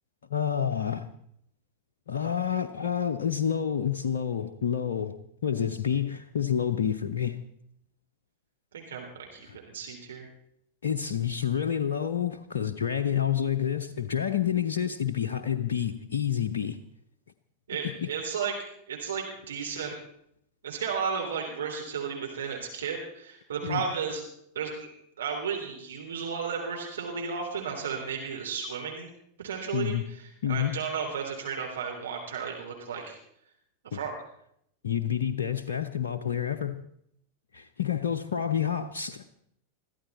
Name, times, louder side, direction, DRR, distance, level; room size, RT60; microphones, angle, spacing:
voice 1, 0.3-1.1 2.1-5.1 5.4-7.4 9.5-9.6 10.8-16.8 17.8-18.1 23.6-23.8 29.7-30.1 30.4-30.8 33.9-34.0 34.8-36.8 37.5-39.2, left 9 dB, 65° left, 0.8 m, -28 dB
voice 2, 8.7-10.3 17.7-20.0 20.6-24.2 24.5-24.9 25.2-29.1 29.4-33.2 33.8-34.1, right 6 dB, 65° right, 3.3 m, -34 dB
22.5 x 14.5 x 4.2 m
figure-of-eight pair, 90°, 0 cm